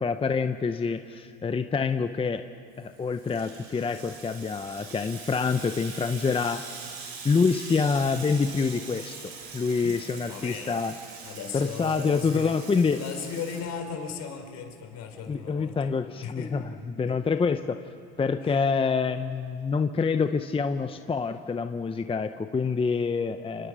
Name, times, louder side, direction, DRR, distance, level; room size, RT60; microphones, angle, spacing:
voice 1, 0.0-2.4 2.8-6.9 7.2-10.9 11.5-13.0 15.3-17.8 18.2-23.7, left 5 dB, 20° left, 8 dB, 0.8 m, -27 dB
Water tap faucet / Sink (filling or washing), 2.8-14.2, right 5 dB, 80° right, 6.5 m, -43 dB
voice 2, 10.3-10.8 11.2-12.6 12.9-15.7 16.2-16.6 17.1-17.2 18.4-18.6, left 6 dB, 55° left, 5 dB, 4.3 m, -37 dB
28.5 x 27.0 x 6.3 m, 2.4 s
supercardioid pair, 105°, 31 cm